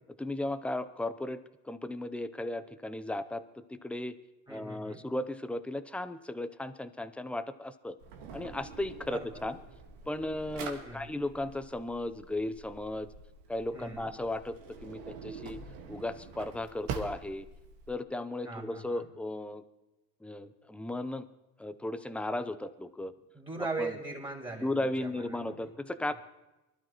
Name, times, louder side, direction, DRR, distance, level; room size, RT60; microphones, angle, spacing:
voice 1, 0.2-3.4 3.7-4.2 4.5-8.0 8.3-9.6 10.1-13.1 13.5-14.5 14.8-15.6 15.9-17.5 17.9-19.6 20.2-21.3 21.6-23.1 23.8-23.9 24.6-26.1, left 1 dB, 5° left, 11 dB, 0.6 m, -35 dB
voice 2, 4.5-5.0 9.1-9.4 10.8-11.1 13.7-14.1 18.4-19.1 23.3-25.5, right 3 dB, 10° right, 0 dB, 4.0 m, -39 dB
Drawer open or close, 8.0-17.9, right 5 dB, 75° right, 1.8 m, -45 dB
23.5 x 12.5 x 3.0 m, 1.0 s
supercardioid pair, 95°, 39 cm